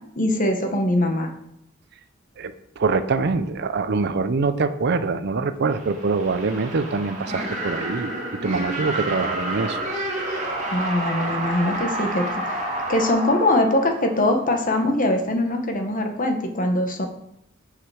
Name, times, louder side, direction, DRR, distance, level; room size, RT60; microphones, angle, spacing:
voice 1, 0.2-1.3 10.7-12.4 12.9-17.1, left 1 dB, 40° left, 5 dB, 1.2 m, -22 dB
voice 2, 2.4-8.1 8.4-9.8, right 4 dB, 55° right, 11 dB, 0.5 m, -24 dB
sound 1, 5.7-14.6, right 1 dB, 35° right, 2.3 m, -29 dB
6.6 x 4.9 x 7.0 m, 0.78 s
head